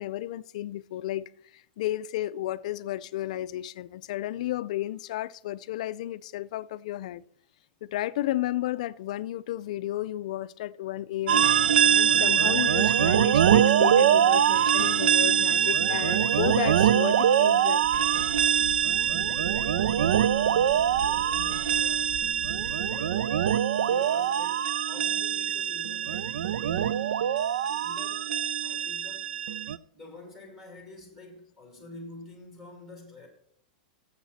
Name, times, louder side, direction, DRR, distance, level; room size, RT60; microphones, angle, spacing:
voice 1, 0.0-7.2 7.8-11.5 11.9-17.9, left 14 dB, 50° left, 0.4 m, -33 dB
sound 1, 11.3-29.8, right 9 dB, 90° right, 0.4 m, -23 dB
sound 2, 17.8-23.2, right 3 dB, 45° right, 1.0 m, -43 dB
voice 2, 18.9-22.2 22.5-23.4 23.7-29.4 29.9-33.3, left 2 dB, 5° right, 2.4 m, -48 dB
16.0 x 7.3 x 4.2 m
supercardioid pair, 175°, 5 cm